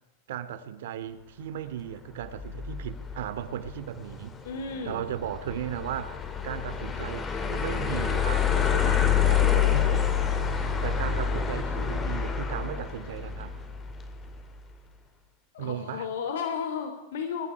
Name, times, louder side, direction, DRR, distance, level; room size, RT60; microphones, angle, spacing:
voice 1, 0.3-4.4 4.8-10.0 10.8-13.6 15.6-16.1, right 10 dB, 75° right, 12 dB, 2.5 m, -36 dB
sound 1, 2.2-14.4, left 8 dB, 15° left, 2.6 m, -28 dB
voice 2, 4.4-5.0 15.5-17.5, left 6 dB, 80° left, 6 dB, 3.6 m, -33 dB
27.5 x 23.0 x 4.7 m, 0.89 s
supercardioid pair, 160°, 0 cm